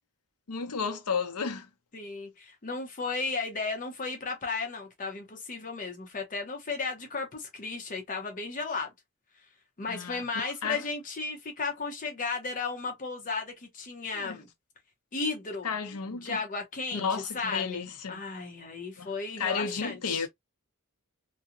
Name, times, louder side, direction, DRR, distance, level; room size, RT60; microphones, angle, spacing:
voice 1, 0.5-1.7 9.9-10.8 14.1-14.4 15.6-16.4 16.9-18.2 19.0-19.1 19.4-20.3, left 5 dB, 85° left, 0.7 m, -33 dB
voice 2, 1.9-8.9 9.8-14.5 15.1-15.7 16.2-17.1 17.3-20.3, left 4 dB, 35° left, 0.7 m, -34 dB
2.8 x 2.1 x 2.4 m
head